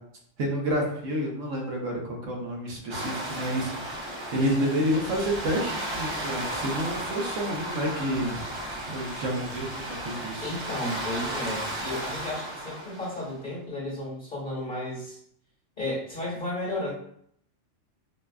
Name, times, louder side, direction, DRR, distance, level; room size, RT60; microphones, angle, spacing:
voice 1, 0.4-8.4 8.9-10.5, equal, 75° right, 0 dB, 1.2 m, -29 dB
sound 1, 2.9-13.4, right 1 dB, 45° right, 0.4 m, -34 dB
voice 2, 10.4-15.2 15.8-16.9, left 1 dB, 40° left, -7 dB, 1.2 m, -33 dB
4.9 x 2.3 x 2.2 m, 0.67 s
omnidirectional pair, 1.3 m